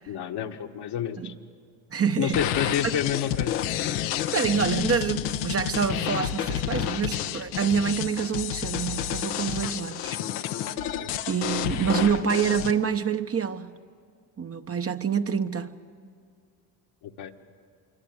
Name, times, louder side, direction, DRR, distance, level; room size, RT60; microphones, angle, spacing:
voice 1, 0.1-1.3 2.2-3.6 10.9-11.1 17.0-17.3, left 10 dB, 60° left, 1.7 m, -29 dB
voice 2, 1.9-2.7 4.3-10.2 11.3-13.8 14.4-15.8, right 7 dB, 30° right, 1.0 m, -27 dB
sound 1, 2.3-12.7, left 10 dB, 75° left, 1.2 m, -30 dB
26.0 x 23.5 x 8.0 m
hypercardioid pair, 65°, 46 cm